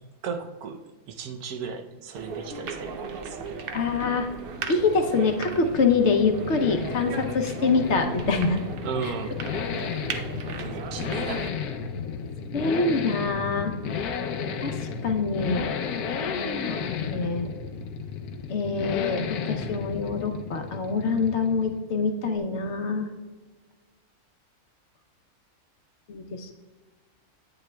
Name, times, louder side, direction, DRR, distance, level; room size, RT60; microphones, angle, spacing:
voice 1, 0.2-0.8 1.1-3.6 8.8-9.4 10.6-11.5, right 5 dB, 80° right, 6 dB, 1.2 m, -35 dB
sound 1, 2.1-11.5, right 5 dB, 60° right, 0.6 m, -37 dB
voice 2, 3.7-4.3 4.7-8.6 9.0-9.1 10.1-10.2 11.0-11.1 12.5-13.7 14.6-14.7 15.0-15.6 16.3-17.5 18.5-23.1 26.1-26.5, left 4 dB, 60° left, 5 dB, 0.9 m, -25 dB
sound 2, 4.0-21.9, left 6 dB, 80° left, 1.1 m, -33 dB
9.7 x 8.8 x 2.2 m, 1.3 s
omnidirectional pair, 1.6 m